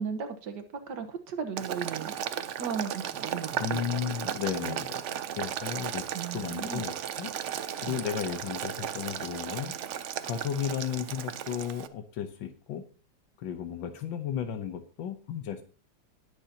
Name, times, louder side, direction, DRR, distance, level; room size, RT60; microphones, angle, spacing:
voice 1, 0.0-2.1 2.6-4.1 4.6-4.8 6.1-6.8 7.8-8.0, right 6 dB, 65° right, 1.8 m, -36 dB
Boiling, 1.6-11.9, right 9 dB, 90° right, 0.6 m, -35 dB
voice 2, 3.6-5.0 5.4-6.1 6.3-7.3 7.8-9.7 10.2-12.8 13.4-15.6, left 8 dB, 90° left, 1.6 m, -34 dB
19.0 x 6.8 x 2.8 m
omnidirectional pair, 2.0 m